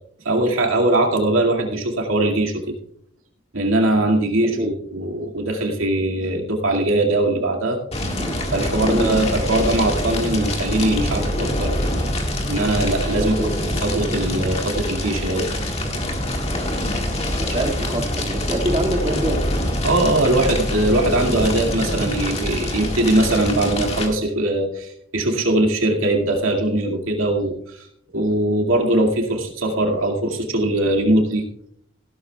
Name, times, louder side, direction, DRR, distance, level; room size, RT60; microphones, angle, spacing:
voice 1, 0.2-2.7 3.5-7.8 8.5-11.7 12.5-13.4 13.8-15.5 19.8-27.9 28.1-31.4, right 1 dB, 90° right, 2 dB, 2.3 m, -21 dB
Fire, 7.9-24.1, left 1 dB, 30° left, 1.9 m, -25 dB
voice 2, 13.2-13.5 17.3-19.5, right 1 dB, 30° right, 0 dB, 2.1 m, -25 dB
16.5 x 12.0 x 2.3 m, 0.68 s
head